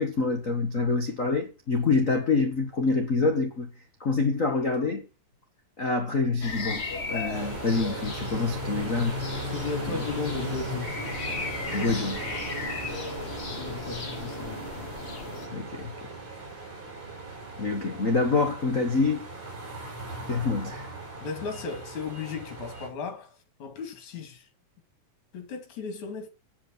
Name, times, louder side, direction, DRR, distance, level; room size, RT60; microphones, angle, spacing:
voice 1, 0.0-3.7 4.0-5.0 5.8-9.1 9.9-10.0 11.7-12.2 15.5-15.9 17.6-19.2 20.3-20.9, left 3 dB, 80° left, 0.7 m, -26 dB
sound 1, 6.4-15.5, left 4 dB, 35° left, 1.1 m, -36 dB
sound 2, 7.3-22.9, right 1 dB, 50° right, 6.6 m, -37 dB
voice 2, 9.5-11.0 13.6-14.6 21.2-24.5 25.3-26.3, left 5 dB, 55° left, 4.0 m, -35 dB
9.7 x 8.3 x 7.4 m
omnidirectional pair, 4.0 m